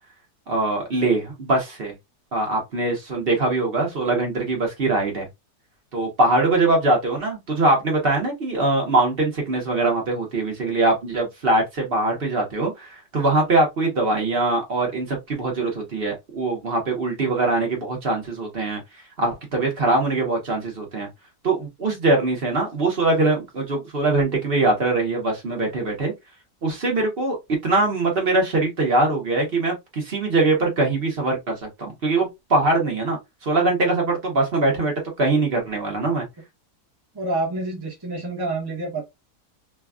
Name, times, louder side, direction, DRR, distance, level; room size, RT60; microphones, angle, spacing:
voice 1, 0.5-1.9 2.3-5.3 5.9-18.8 19.2-21.1 21.4-26.1 26.6-27.4 27.6-36.3, right 2 dB, 45° right, 1.0 m, -22 dB
voice 2, 37.1-39.0, right 2 dB, 20° right, 0.7 m, -27 dB
3.3 x 2.2 x 2.3 m
omnidirectional pair, 1.7 m